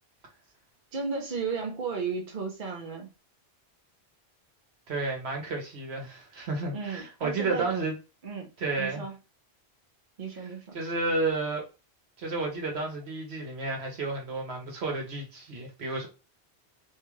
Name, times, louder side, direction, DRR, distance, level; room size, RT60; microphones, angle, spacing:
voice 1, 0.9-3.1 6.7-7.7 8.2-8.5 8.8-9.1 10.2-10.8, right 5 dB, 50° right, 0.8 m, -34 dB
voice 2, 4.9-8.0 8.6-9.0 10.7-11.6 12.2-16.1, right 3 dB, 75° right, 1.3 m, -31 dB
2.8 x 2.4 x 3.1 m
omnidirectional pair, 1.1 m